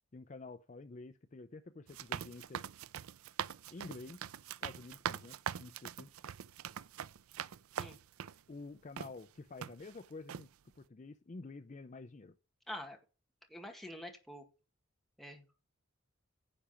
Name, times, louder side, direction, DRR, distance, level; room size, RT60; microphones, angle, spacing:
voice 1, 0.1-2.7 3.7-4.3 4.6-6.1 8.5-10.5 10.8-12.4, left 3 dB, 35° left, 0.4 m, -49 dB
sound 1, 1.9-8.4 9.0-9.1 9.6-10.0 10.3-10.5, right 8 dB, 80° right, 0.4 m, -42 dB
voice 2, 12.7-13.0 13.5-14.4 15.2-15.6, left 1 dB, ahead, 1.8 m, -46 dB
10.5 x 5.0 x 7.0 m
head